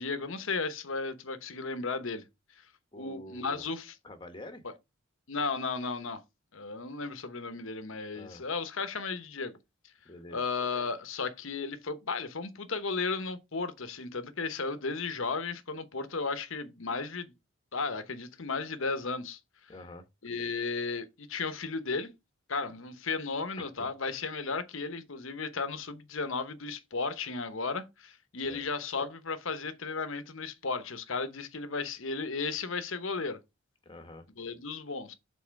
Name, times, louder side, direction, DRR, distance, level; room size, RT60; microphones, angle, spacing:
voice 1, 0.0-2.2 3.0-3.9 5.3-6.2 6.5-9.5 10.3-17.3 17.7-19.4 20.2-22.1 22.5-33.4 34.4-35.1, left 4 dB, 65° left, 1.0 m, -34 dB
voice 2, 2.9-3.6 4.0-4.6 8.1-8.4 10.0-10.5 19.7-20.0 23.6-23.9 28.5-28.7 33.8-34.3, left 2 dB, 20° left, 1.2 m, -46 dB
7.4 x 4.1 x 4.6 m
head